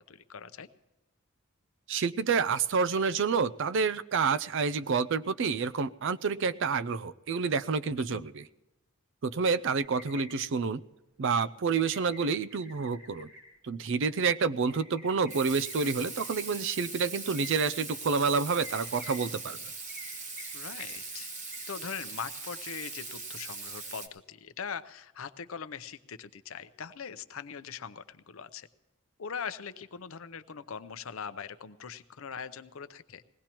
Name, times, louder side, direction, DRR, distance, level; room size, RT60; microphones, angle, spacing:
voice 1, 0.1-0.7 8.1-8.3 20.5-21.3 21.7-28.7 29.2-33.2, left 6 dB, 70° left, 12 dB, 0.6 m, -41 dB
voice 2, 1.9-8.5 9.2-10.8 11.2-13.3 13.6-19.6, right 5 dB, 60° right, 15 dB, 0.4 m, -28 dB
sound 1, 9.8-10.2 11.7-12.2 12.5-13.4 14.7-15.9 16.2-16.4 17.3-17.6 18.6-19.2 19.9-20.1 20.4-20.5 20.8-20.9 21.5-21.6, left 1 dB, 80° right, 6.5 m, -48 dB
Water tap faucet / Sink (filling or washing), 15.3-24.1, right 4 dB, 35° right, 1.1 m, -41 dB
21.0 x 17.5 x 3.0 m, 1.0 s
head